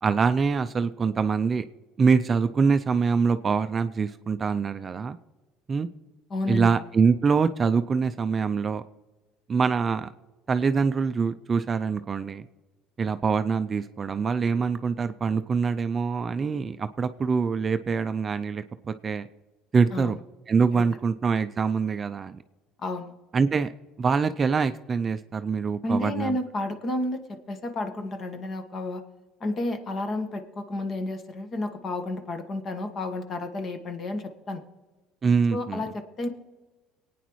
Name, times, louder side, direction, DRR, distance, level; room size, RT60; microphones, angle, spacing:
voice 1, 0.0-1.6 2.0-5.2 5.7-5.9 6.5-8.8 9.5-10.1 10.5-12.4 13.0-19.3 19.7-20.2 20.5-22.4 23.3-23.7 24.0-26.4 35.2-35.8, right 5 dB, 30° right, 10 dB, 0.5 m, -24 dB
voice 2, 6.3-6.7 19.9-20.1 20.7-20.8 22.8-23.1 25.8-29.0 29.4-34.6 35.5-36.3, left 2 dB, 35° left, 7 dB, 1.4 m, -31 dB
23.0 x 9.2 x 3.1 m, 1.2 s
cardioid pair, 115°, 0 cm